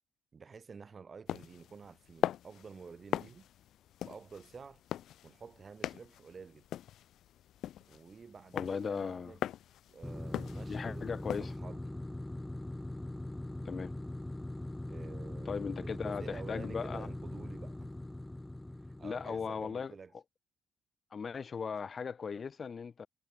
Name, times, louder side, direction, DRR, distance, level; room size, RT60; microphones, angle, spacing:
voice 1, 0.3-3.5 4.0-4.8 5.2-6.7 7.9-9.5 9.9-12.0 14.9-17.9 18.7-20.1, right 5 dB, 40° right, 6.9 m, -50 dB
sound 1, 1.3-11.5, left 12 dB, 75° left, 0.5 m, -41 dB
voice 2, 8.5-9.3 10.7-11.5 13.7-13.9 15.5-17.1 19.0-19.9 21.1-23.1, left 6 dB, 40° left, 2.2 m, -37 dB
sound 2, 10.0-19.8, left 1 dB, 10° left, 4.7 m, -42 dB
cardioid pair, 90°, 0 cm